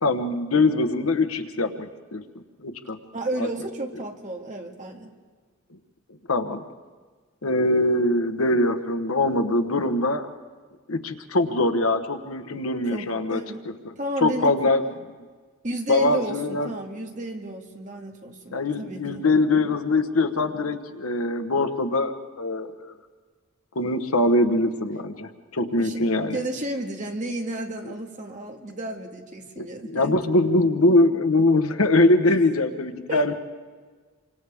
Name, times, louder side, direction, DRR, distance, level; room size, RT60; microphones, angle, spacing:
voice 1, 0.0-2.2 2.6-3.0 3.4-3.5 6.3-6.6 7.4-10.3 10.9-13.7 14.2-14.9 15.9-16.7 18.5-22.9 23.7-26.4 29.8-33.3, left 2 dB, 85° left, 8 dB, 1.2 m, -22 dB
voice 2, 3.1-5.2 12.9-13.6 14.0-14.5 15.6-19.2 25.7-30.2 33.1-33.3, right 1 dB, 35° right, 2 dB, 2.0 m, -32 dB
28.5 x 25.5 x 3.6 m, 1.5 s
head